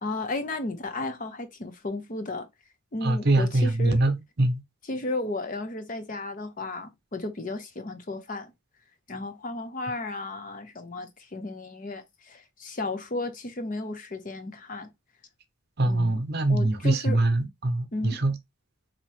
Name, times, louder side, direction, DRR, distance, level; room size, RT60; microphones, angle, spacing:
voice 1, 0.0-2.5 2.9-4.0 4.9-8.5 9.1-14.9 15.9-16.2 16.5-17.2 17.9-18.2, left 2 dB, 40° left, 0.6 m, -34 dB
voice 2, 3.0-4.6 15.8-18.4, right 2 dB, 50° right, 0.8 m, -23 dB
4.1 x 2.8 x 3.2 m
head